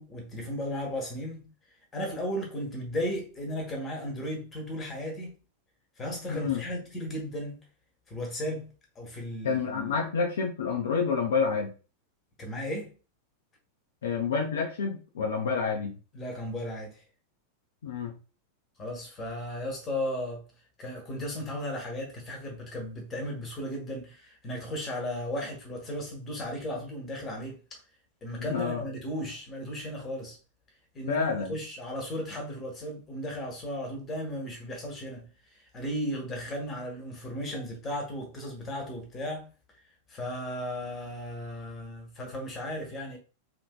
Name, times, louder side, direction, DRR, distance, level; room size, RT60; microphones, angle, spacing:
voice 1, 0.0-1.5 1.9-5.4 6.0-7.6 8.1-9.9 12.4-12.9 16.1-17.0 18.8-20.4 20.8-27.6 28.2-30.4 30.9-39.5 40.1-43.2, equal, 20° left, 1.1 m, -35 dB
voice 2, 6.3-6.6 9.4-11.7 14.0-16.0 17.8-18.2 28.4-28.8 31.1-31.6, left 5 dB, 60° left, 0.5 m, -28 dB
2.9 x 2.7 x 2.2 m
figure-of-eight pair, 90°, 0 cm